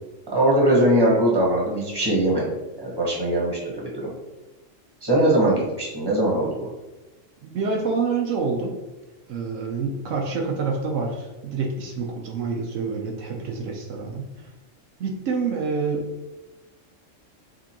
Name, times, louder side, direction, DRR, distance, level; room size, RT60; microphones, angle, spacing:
voice 1, 0.3-4.1 5.0-6.7, right 1 dB, 20° right, -4 dB, 1.4 m, -21 dB
voice 2, 7.4-8.7 9.3-14.2 15.0-16.1, right 4 dB, 75° right, 1 dB, 1.0 m, -27 dB
5.0 x 3.6 x 2.9 m, 1.1 s
omnidirectional pair, 1.3 m